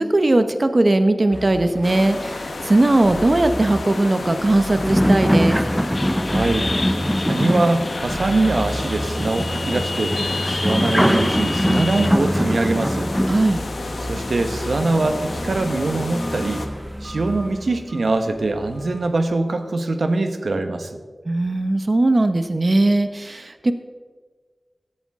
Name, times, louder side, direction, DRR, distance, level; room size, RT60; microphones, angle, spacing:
voice 1, 0.0-5.6 13.3-13.6 21.3-23.7, right 2 dB, 40° right, 9 dB, 0.9 m, -19 dB
sound 1, 1.3-18.0 18.6-19.1, equal, ahead, 0.4 m, -25 dB
sound 2, 1.8-16.7, left 3 dB, 90° left, 1.2 m, -32 dB
sound 3, 5.9-12.1, left 2 dB, 45° left, 0.9 m, -30 dB
voice 2, 6.2-6.7 7.2-13.1 14.1-16.6 17.0-21.0, right 2 dB, 75° right, 7 dB, 1.2 m, -23 dB
16.0 x 12.0 x 3.7 m, 1.5 s
wide cardioid pair, 80°, 0 cm